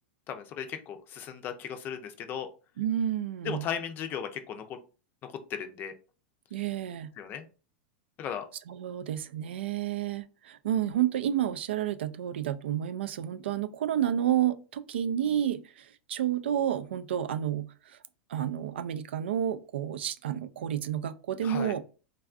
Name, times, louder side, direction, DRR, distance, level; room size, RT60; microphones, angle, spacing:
voice 1, 0.3-2.5 3.4-4.8 5.2-6.0 7.2-7.5 8.2-8.5 21.4-21.7, left 8 dB, 35° left, 0.5 m, -36 dB
voice 2, 2.8-3.6 6.5-7.1 8.7-18.0 18.3-21.8, right 10 dB, 90° right, 0.3 m, -30 dB
3.5 x 2.3 x 2.4 m
supercardioid pair, 130°, 6 cm